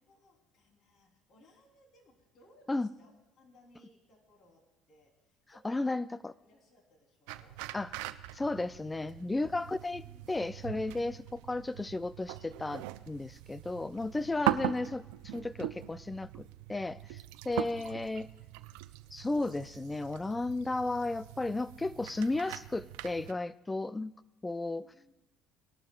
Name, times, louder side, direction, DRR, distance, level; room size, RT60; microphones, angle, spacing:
voice 1, 0.1-3.1 3.4-6.1 6.4-7.6 9.2-10.4 24.6-25.2, left 2 dB, 50° left, 1 dB, 3.6 m, -63 dB
voice 2, 5.6-6.3 7.7-7.9 8.3-10.0 10.3-17.2 17.4-18.3 19.1-24.1 24.4-24.9, left 2 dB, 15° left, 17 dB, 0.4 m, -34 dB
sound 1, 7.3-23.3, right 15 dB, 85° right, 0.4 m, -41 dB
19.0 x 12.0 x 2.4 m, 1.1 s
supercardioid pair, 90°, 0 cm